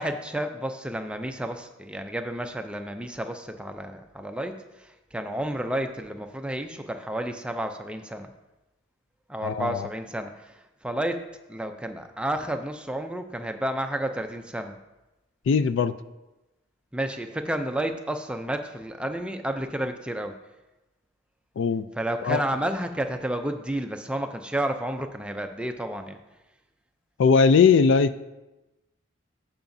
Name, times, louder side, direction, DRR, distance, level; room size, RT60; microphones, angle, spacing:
voice 1, 0.0-8.3 9.3-14.8 16.9-20.4 22.0-26.2, right 1 dB, 5° right, 6 dB, 0.4 m, -31 dB
voice 2, 9.4-9.9 15.5-15.9 21.6-21.9 22.2-22.4 27.2-28.2, left 5 dB, 65° left, 14 dB, 0.3 m, -20 dB
14.0 x 5.7 x 2.6 m, 1.0 s
head